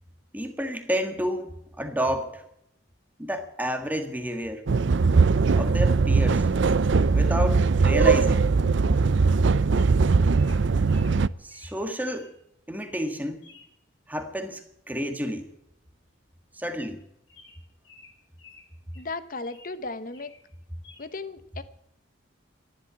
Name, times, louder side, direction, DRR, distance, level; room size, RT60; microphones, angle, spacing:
voice 1, 0.3-2.4 3.2-4.6 5.5-6.5 7.1-8.5 11.4-12.3 12.7-13.5 14.1-15.5 16.5-17.0, equal, 10° right, 6 dB, 1.6 m, -30 dB
sound 1, 4.7-11.3, right 4 dB, 65° right, 0.5 m, -20 dB
Bird vocalization bird call bird song, 9.8-12.3 12.8-13.1 13.4-13.7 15.2-15.4 15.7-15.8 16.0-16.2 16.7-16.8 17.3-19.7 20.1-20.4 20.8-21.1, left 3 dB, 60° left, 7.5 m, -54 dB
voice 2, 19.0-20.4 21.0-21.6, left 3 dB, 45° left, 14 dB, 1.0 m, -35 dB
14.0 x 11.5 x 8.4 m, 0.78 s
head